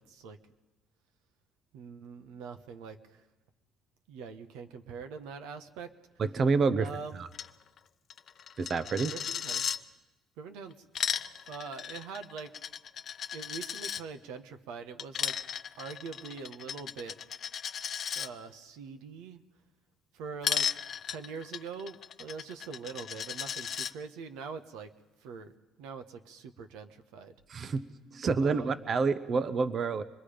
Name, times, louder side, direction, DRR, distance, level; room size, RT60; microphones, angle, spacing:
voice 1, 0.1-0.4 1.7-3.2 4.1-5.9 6.8-7.2 9.1-9.7 10.4-11.1 11.5-12.6 13.3-15.4 15.8-17.2 18.1-19.4 20.1-20.7 21.1-24.9 25.2-25.5 25.8-27.4 28.4-28.9, right 5 dB, 90° right, 7 dB, 1.2 m, -43 dB
voice 2, 6.2-6.9 7.2-7.3 8.6-9.1 27.5-27.9 28.1-30.0, right 4 dB, 40° right, 13 dB, 0.8 m, -28 dB
Coin (dropping), 7.3-7.5 7.8-7.9 8.1-9.8 10.7-14.0 15.0-18.3 20.4-23.9, left 8 dB, 50° left, 0.7 m, -35 dB
25.0 x 20.5 x 5.1 m, 1.1 s
cardioid pair, 110°, 0 cm